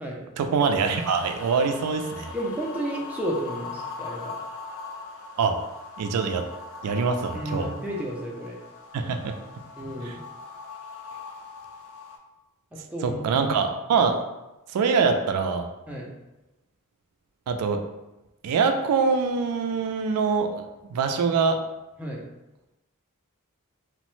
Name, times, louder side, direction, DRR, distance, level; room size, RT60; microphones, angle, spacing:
voice 1, 0.4-2.3 5.4-5.6 6.0-6.4 6.8-7.7 8.9-9.3 10.0-10.2 13.0-14.2 14.7-15.7 17.5-17.8 18.4-20.6 20.9-21.6, right 5 dB, 80° right, 6 dB, 0.3 m, -24 dB
sound 1, 0.8-12.2, left 4 dB, 60° left, 0.4 m, -40 dB
voice 2, 2.3-4.3 7.3-8.6 9.8-10.2 12.9-13.5 15.9-16.1 22.0-22.2, right 1 dB, 5° right, -3 dB, 0.4 m, -32 dB
3.0 x 2.0 x 3.0 m, 1.0 s
head